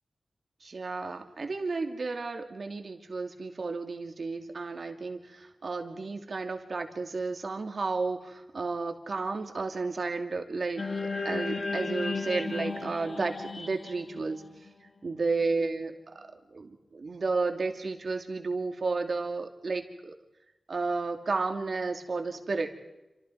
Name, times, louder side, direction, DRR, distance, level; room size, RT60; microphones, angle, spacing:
voice 1, 0.6-14.4 15.0-20.1 20.7-22.7, right 3 dB, 55° right, 5 dB, 2.6 m, -32 dB
sound 1, 10.8-15.1, left 3 dB, 45° left, 1.5 m, -34 dB
28.0 x 27.5 x 4.7 m, 1.0 s
wide cardioid pair, 95°, 0 cm